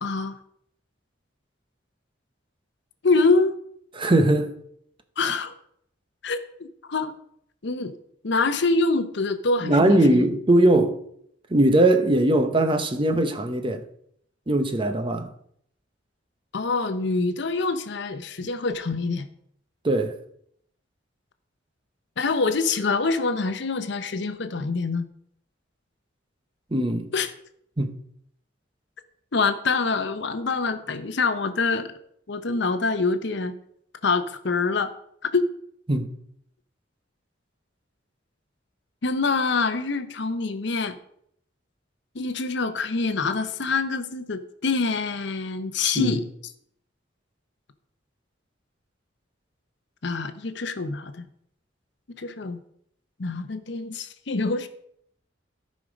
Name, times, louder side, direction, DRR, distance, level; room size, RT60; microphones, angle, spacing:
voice 1, 0.0-0.4 3.0-3.6 5.2-5.5 6.2-7.2 7.6-8.0 8.2-10.3 16.5-19.3 22.2-25.0 27.1-27.3 29.3-31.9 32.3-33.5 34.0-34.9 35.3-35.5 39.0-41.0 42.1-46.3 50.0-51.2 52.1-52.6 53.2-54.7, left 3 dB, 65° left, 0.8 m, -25 dB
voice 2, 3.9-4.5 9.6-11.0 11.5-13.8 14.5-15.3 19.8-20.2 26.7-27.1 27.8-27.9 35.9-36.1 46.0-46.2, right 1 dB, 25° right, 0.8 m, -20 dB
13.0 x 5.3 x 5.1 m
head